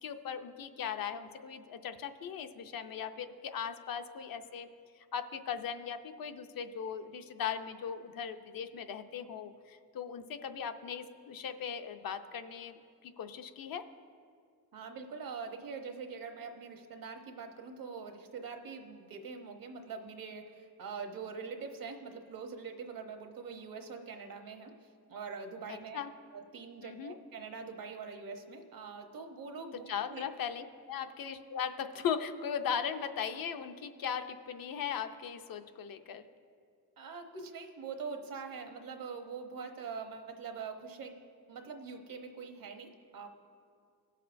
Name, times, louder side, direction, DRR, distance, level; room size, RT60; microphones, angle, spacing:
voice 1, 0.0-4.7 5.1-13.8 25.9-26.1 26.8-27.1 29.9-36.2, left 7 dB, 65° left, 8 dB, 0.5 m, -38 dB
voice 2, 14.7-24.7 25.1-26.0 26.3-30.3 37.0-41.2 41.5-43.3, right 5 dB, 65° right, 5 dB, 1.0 m, -44 dB
18.5 x 6.6 x 2.5 m, 2.2 s
wide cardioid pair, 135°, 38 cm